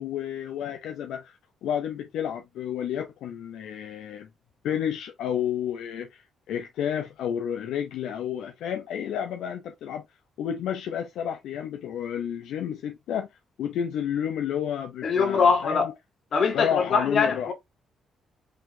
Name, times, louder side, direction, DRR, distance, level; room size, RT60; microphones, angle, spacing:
voice 1, 0.0-4.3 4.6-10.0 10.4-13.3 13.6-15.8 16.5-17.5, left 9 dB, 80° left, 0.6 m, -31 dB
voice 2, 15.0-15.9 16.3-17.5, left 5 dB, 55° left, 2.1 m, -22 dB
5.0 x 3.8 x 2.7 m
cardioid pair, 90°, 0 cm